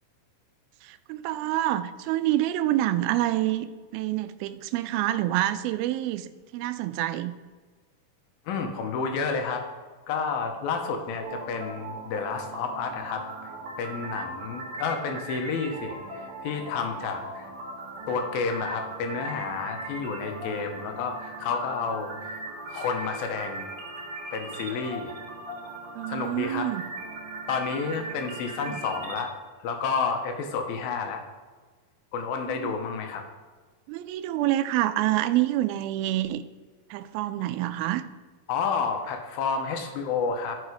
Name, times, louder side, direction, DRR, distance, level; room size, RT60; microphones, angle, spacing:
voice 1, 0.8-7.3 26.0-26.8 28.7-28.8 32.5-32.7 33.9-36.4 36.9-38.1, right 14 dB, 85° right, 12 dB, 2.4 m, -27 dB
voice 2, 8.5-9.7 10.1-13.5 13.8-17.5 18.1-22.4 22.7-23.7 24.3-25.1 26.1-26.7 27.5-29.3 29.6-31.2 32.1-33.2 38.5-40.6, left 5 dB, 85° left, 4 dB, 2.8 m, -30 dB
sound 1, 11.2-29.2, right 2 dB, 55° right, 2.7 m, -39 dB
12.5 x 5.5 x 4.9 m, 1.4 s
omnidirectional pair, 4.2 m